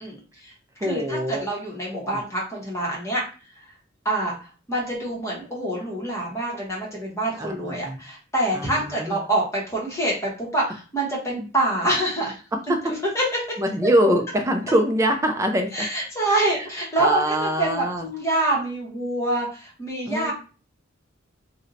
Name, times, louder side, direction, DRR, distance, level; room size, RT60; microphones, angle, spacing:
voice 1, 0.0-0.5 0.8-3.2 3.5-3.7 4.0-4.3 4.7-12.4 12.9-13.6 15.7-20.3, right 1 dB, 15° left, -4 dB, 0.8 m, -26 dB
voice 2, 0.8-1.5 1.9-2.2 7.4-8.0 8.5-9.2 12.5-12.9 13.6-15.9 16.4-16.7 17.0-18.1 20.1-20.3, equal, 15° right, 5 dB, 0.3 m, -24 dB
2.6 x 2.1 x 3.8 m, 0.35 s
head